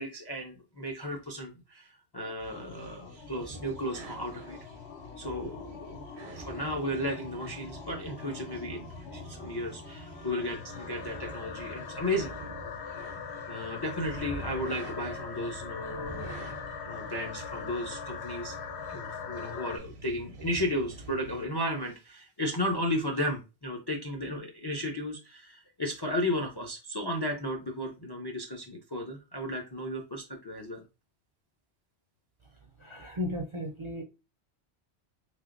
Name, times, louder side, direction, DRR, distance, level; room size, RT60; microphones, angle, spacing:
voice 1, 0.0-4.6 5.2-6.0 6.4-12.3 13.5-16.4 16.9-18.6 18.9-30.8, left 1 dB, 40° left, 2 dB, 0.4 m, -34 dB
sound 1, 2.1-19.8, left 7 dB, 75° left, 0.9 m, -43 dB
sound 2, 2.4-21.5, right 1 dB, 70° right, 1.1 m, -45 dB
voice 2, 32.8-34.0, left 1 dB, 45° right, 2 dB, 0.4 m, -35 dB
3.4 x 3.3 x 2.4 m, 0.28 s
omnidirectional pair, 1.2 m